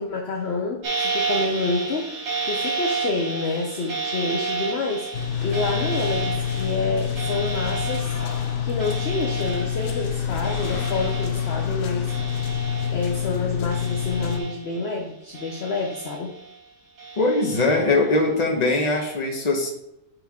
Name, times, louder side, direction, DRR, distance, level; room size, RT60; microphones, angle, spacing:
voice 1, 0.0-2.2 2.5-5.1 5.4-8.1 8.6-12.1 12.9-16.3, left 3 dB, 50° left, 1 dB, 0.8 m, -28 dB
sound 1, 0.8-13.4 13.7-14.9 15.3-16.6 17.0-18.0 18.6-19.1, right 4 dB, 80° right, 1.9 m, -32 dB
sound 2, 5.1-14.4, left 9 dB, 90° left, 0.5 m, -27 dB
voice 2, 17.2-19.7, left 2 dB, 30° left, 1 dB, 1.1 m, -21 dB
7.8 x 3.5 x 3.7 m, 0.82 s
omnidirectional pair, 1.7 m